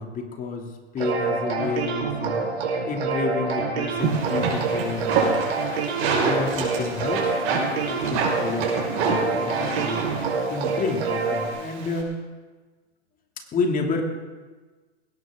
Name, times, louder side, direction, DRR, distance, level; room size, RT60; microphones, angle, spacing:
voice 1, 0.0-5.5 6.0-10.0 10.5-12.1 13.5-14.0, left 4 dB, 25° left, 2 dB, 2.9 m, -30 dB
sound 1, 1.0-11.5, right 4 dB, 65° right, 4.7 m, -27 dB
sound 2, 4.0-12.0, right 4 dB, 40° right, 5.9 m, -28 dB
20.0 x 18.0 x 3.9 m, 1.3 s
hypercardioid pair, 110°, 35 cm